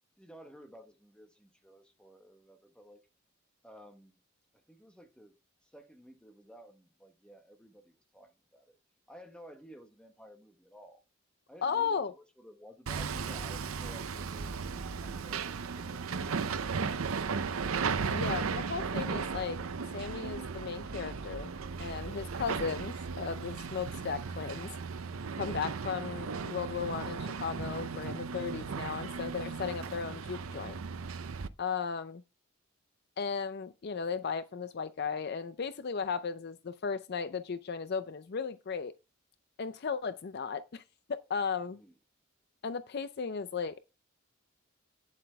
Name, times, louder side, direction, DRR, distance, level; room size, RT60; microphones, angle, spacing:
voice 1, 0.2-3.0 3.6-4.2 4.5-5.3 5.6-8.8 9.1-11.0 11.5-17.4 41.7-42.0, equal, 5° left, 1.2 m, -54 dB
voice 2, 11.6-12.1 18.1-19.6 19.9-21.5 21.8-24.7 25.3-30.8 31.6-32.2 33.2-38.9 39.6-40.8 41.1-41.8 42.6-43.8, left 5 dB, 50° left, 0.5 m, -35 dB
Hammer, 12.9-31.5, right 5 dB, 85° right, 0.6 m, -36 dB
9.0 x 7.5 x 3.4 m
head